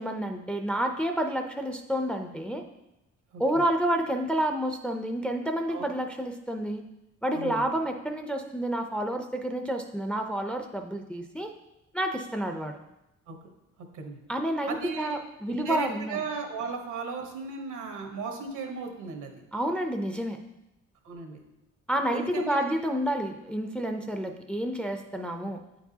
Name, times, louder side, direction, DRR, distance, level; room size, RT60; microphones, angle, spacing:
voice 1, 0.0-2.6 3.4-6.8 7.2-11.5 11.9-12.8 14.3-16.2 19.5-20.4 21.9-25.6, right 1 dB, 5° left, 5 dB, 0.4 m, -29 dB
voice 2, 7.3-7.7 13.3-13.4 13.9-14.2 14.6-15.2 15.5-19.3 21.0-21.4 22.1-22.7, right 4 dB, 80° right, 3 dB, 1.1 m, -36 dB
8.6 x 4.7 x 2.7 m, 0.92 s
cardioid pair, 90°, 30 cm